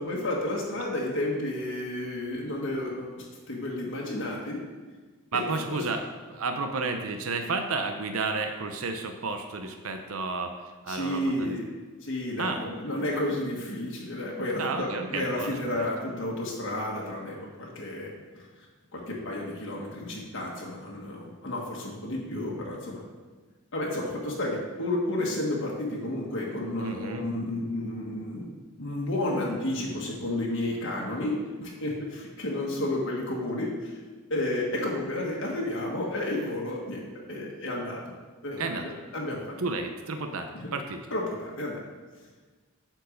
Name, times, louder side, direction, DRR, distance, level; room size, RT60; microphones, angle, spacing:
voice 1, 0.0-4.6 5.3-5.4 5.7-5.8 10.9-11.6 12.0-18.1 18.3-18.7 18.9-23.0 23.7-28.5 28.8-34.0 34.3-38.0 38.4-39.5 40.5-40.7 41.1-41.8, left 1 dB, 60° left, -3 dB, 1.5 m, -31 dB
voice 2, 5.3-6.0 6.3-10.5 10.8-11.6 12.4-12.6 14.6-15.8 26.8-27.2 38.6-38.8 39.6-41.0, right 3 dB, 75° right, 6 dB, 0.7 m, -31 dB
9.6 x 4.6 x 6.5 m, 1.4 s
head